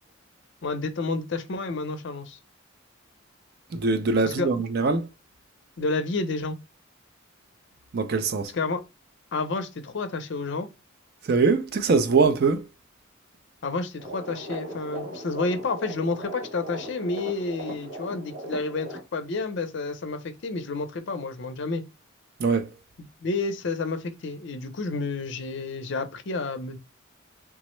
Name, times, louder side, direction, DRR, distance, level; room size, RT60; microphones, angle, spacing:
voice 1, 0.6-2.4 4.2-4.5 5.8-6.6 8.5-8.8 9.3-10.7 13.6-21.8 23.2-26.8, left 3 dB, 55° left, 0.5 m, -30 dB
voice 2, 3.7-5.1 7.9-8.5 11.2-12.7 22.4-22.7, right 4 dB, 50° right, 0.4 m, -22 dB
sound 1, 14.0-19.0, right 1 dB, 70° right, 1.1 m, -38 dB
3.5 x 2.0 x 3.0 m
head